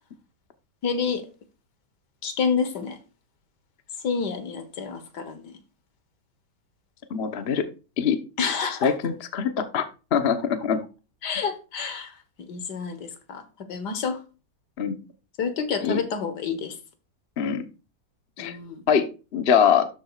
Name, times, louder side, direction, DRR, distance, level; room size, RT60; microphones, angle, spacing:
voice 1, 0.8-1.2 2.2-3.0 4.0-5.6 8.4-8.9 11.2-12.1 12.5-13.4 13.7-14.2 15.4-16.7 18.4-18.8, left 6 dB, 70° left, 1.8 m, -28 dB
voice 2, 7.1-7.7 8.0-8.2 8.8-10.8 14.8-15.0 15.8-16.0 17.4-17.6 18.4-18.6 18.9-19.1 19.3-19.9, left 7 dB, 40° left, 1.0 m, -23 dB
12.5 x 7.4 x 2.4 m
omnidirectional pair, 1.9 m